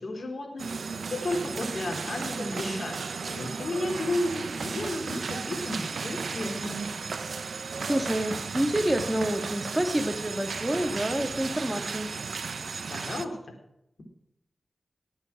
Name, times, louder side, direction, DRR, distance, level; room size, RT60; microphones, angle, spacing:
voice 1, 0.0-6.9 12.9-13.4, left 1 dB, 70° left, 4 dB, 4.4 m, -33 dB
sound 1, 0.6-13.3, right 5 dB, 85° right, 0.9 m, -35 dB
voice 2, 2.4-2.8 7.9-12.1, right 1 dB, 15° right, 5 dB, 2.6 m, -28 dB
20.0 x 8.9 x 6.3 m, 0.81 s
cardioid pair, 45°, 0 cm